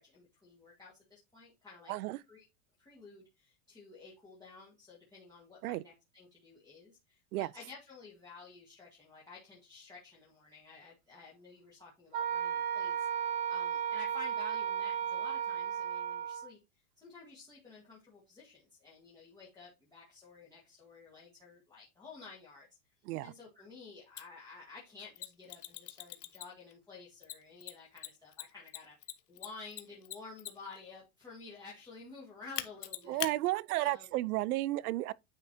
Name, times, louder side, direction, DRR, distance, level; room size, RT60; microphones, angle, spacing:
voice 1, 0.0-1.9 2.3-2.4 2.8-16.6 17.0-22.7 23.2-29.0 29.3-33.2 33.8-34.1, left 4 dB, 10° left, 1.6 m, -52 dB
voice 2, 1.9-2.2 5.6-5.8 7.3-7.5 23.1-23.3 33.1-35.1, right 17 dB, 75° right, 0.6 m, -33 dB
Wind instrument woodwind instrument, 12.1-16.5, right 9 dB, 40° right, 1.8 m, -34 dB
Mechanisms, 24.2-24.3 25.2-26.7 27.2-30.8 32.6-33.3, left 14 dB, 85° left, 1.2 m, -41 dB
9.5 x 5.3 x 2.8 m
supercardioid pair, 165°, 44 cm